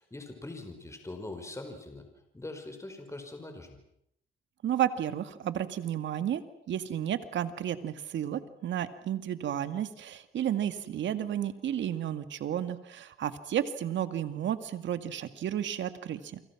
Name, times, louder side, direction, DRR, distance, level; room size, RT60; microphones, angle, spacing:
voice 1, 0.0-2.1 2.3-3.7, left 2 dB, 15° left, 5 dB, 5.1 m, -42 dB
voice 2, 4.6-6.4 6.7-16.4, right 10 dB, 70° right, 11 dB, 2.1 m, -32 dB
29.0 x 25.0 x 6.1 m, 0.74 s
cardioid pair, 90°, 20 cm